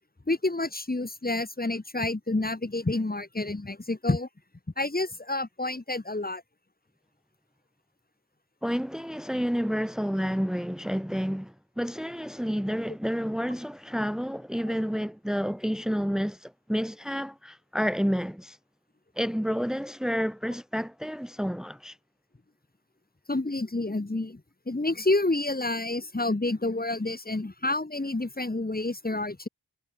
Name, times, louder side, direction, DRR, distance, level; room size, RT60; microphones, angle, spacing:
voice 1, 0.3-4.3 4.8-6.4 23.3-24.4 24.7-29.5, left 2 dB, 25° left, 2.6 m, -29 dB
voice 2, 8.6-18.6 19.2-22.0, equal, ahead, 2.0 m, -30 dB
wide cardioid pair, 100°, 39 cm